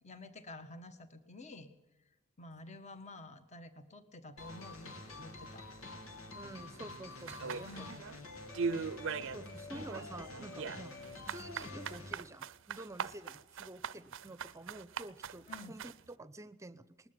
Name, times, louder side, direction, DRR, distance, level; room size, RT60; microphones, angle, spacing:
voice 1, 0.0-1.7 2.0-5.7 7.6-8.0 15.5-15.7, left 2 dB, 35° left, 9 dB, 1.5 m, -50 dB
sound 1, 4.4-12.1, left 2 dB, 90° left, 3.1 m, -48 dB
voice 2, 6.3-7.9 9.2-17.1, right 1 dB, 15° right, 15 dB, 0.8 m, -49 dB
sound 2, 7.3-8.2 8.5-9.4 9.7-16.0, right 5 dB, 65° right, 0.6 m, -40 dB
20.0 x 14.0 x 9.7 m, 0.93 s
head